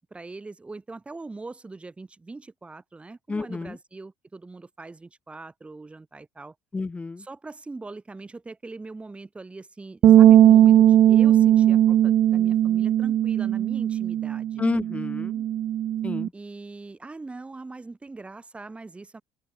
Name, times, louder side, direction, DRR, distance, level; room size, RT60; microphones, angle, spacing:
voice 1, 0.1-6.5 7.2-14.6 16.3-19.2, right 3 dB, 15° right, 7.5 m, -41 dB
voice 2, 3.3-3.8 6.7-7.2 14.6-15.4 16.0-16.3, left 3 dB, 15° left, 1.8 m, -29 dB
sound 1, 10.0-16.3, right 11 dB, 45° right, 0.7 m, -18 dB
open air
cardioid pair, 115°, 8 cm